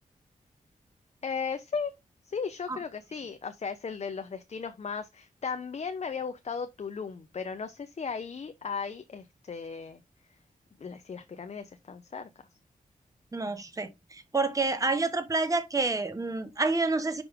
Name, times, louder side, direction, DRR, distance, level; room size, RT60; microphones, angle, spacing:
voice 1, 1.2-1.9 2.2-10.0 10.8-12.3, left 5 dB, 50° left, 0.6 m, -36 dB
voice 2, 13.3-17.2, right 3 dB, 25° right, 1.0 m, -28 dB
5.9 x 5.2 x 3.5 m
wide cardioid pair, 105°, 15 cm